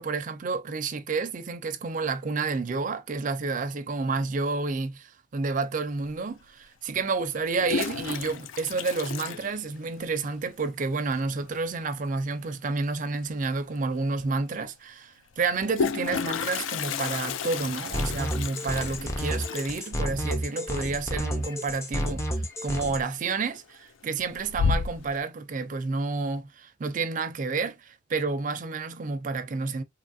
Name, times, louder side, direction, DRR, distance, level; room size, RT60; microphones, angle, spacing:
voice 1, 0.0-29.8, right 4 dB, 40° right, 0.4 m, -30 dB
Toilet flush, 6.0-6.1 7.3-10.2 10.4-10.5 10.8-10.9 11.2-11.6 13.3-13.4 13.7-13.8 15.4-22.1 22.4-22.8 23.2-23.8 24.2-25.2, left 5 dB, 80° left, 0.3 m, -32 dB
sound 1, 17.9-23.0, equal, 15° left, 0.4 m, -31 dB
2.9 x 2.4 x 2.6 m
head